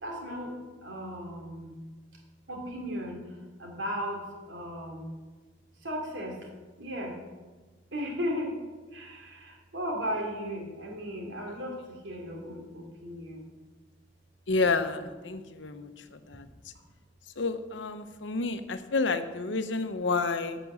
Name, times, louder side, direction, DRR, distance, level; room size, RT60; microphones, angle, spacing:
voice 1, 0.0-1.7 2.5-5.1 5.8-6.5 6.8-7.2 7.9-8.6 8.9-13.5, equal, 80° right, 1 dB, 3.1 m, -36 dB
voice 2, 14.5-15.9 16.3-16.4 17.4-20.6, left 3 dB, 75° left, 9 dB, 0.9 m, -29 dB
12.0 x 6.1 x 8.2 m, 1.3 s
head